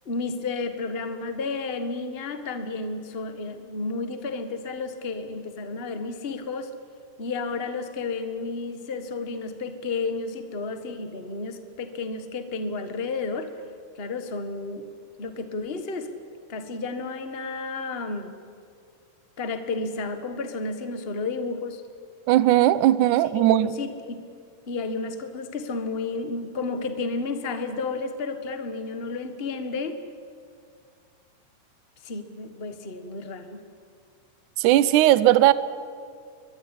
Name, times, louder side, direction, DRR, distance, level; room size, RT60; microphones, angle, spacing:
voice 1, 0.0-6.7 7.2-13.5 13.9-14.8 15.2-16.1 16.5-18.3 19.4-21.8 23.2-24.3 24.7-30.0 32.0-33.6, left 3 dB, 90° left, 8 dB, 0.5 m, -32 dB
voice 2, 22.3-23.7 34.6-35.5, right 14 dB, 75° right, 16 dB, 2.1 m, -18 dB
22.5 x 22.0 x 10.0 m, 2.2 s
omnidirectional pair, 4.0 m